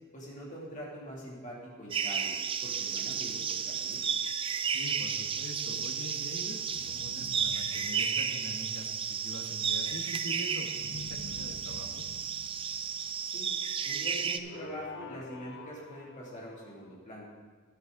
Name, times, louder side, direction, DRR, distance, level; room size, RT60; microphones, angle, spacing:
voice 1, 0.1-4.1 13.3-13.5 13.8-17.3, equal, 35° left, -4 dB, 2.6 m, -44 dB
sound 1, 1.9-14.4, right 7 dB, 25° right, 0.4 m, -33 dB
sound 2, 4.4-5.4 6.7-9.3 10.7-13.9 14.4-16.9, left 3 dB, 55° left, 0.7 m, -49 dB
voice 2, 4.7-12.1, left 1 dB, 70° left, 3 dB, 1.4 m, -44 dB
12.0 x 10.5 x 3.8 m, 1.5 s
head